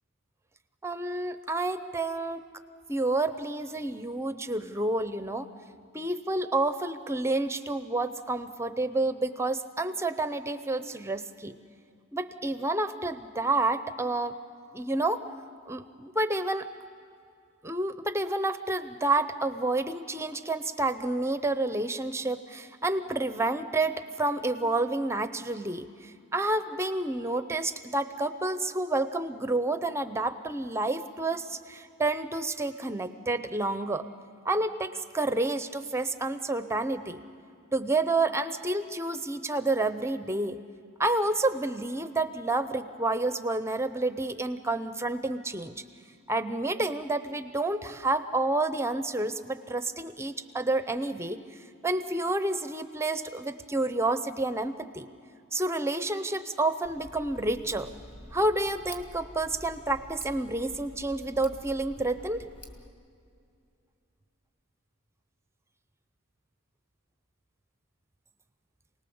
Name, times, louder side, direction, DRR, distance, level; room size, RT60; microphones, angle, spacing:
voice 1, 0.8-2.4 2.9-5.5 5.9-11.6 12.1-14.4 14.7-15.2 15.7-16.7 17.6-34.1 34.4-37.2 37.7-40.6 41.0-45.8 46.3-51.4 51.8-55.1 55.5-57.9 58.3-62.4, right 2 dB, 10° right, 10 dB, 0.6 m, -29 dB
Tick, 56.8-62.9, equal, 25° left, 2.0 m, -48 dB
28.5 x 19.0 x 7.0 m, 2.4 s
head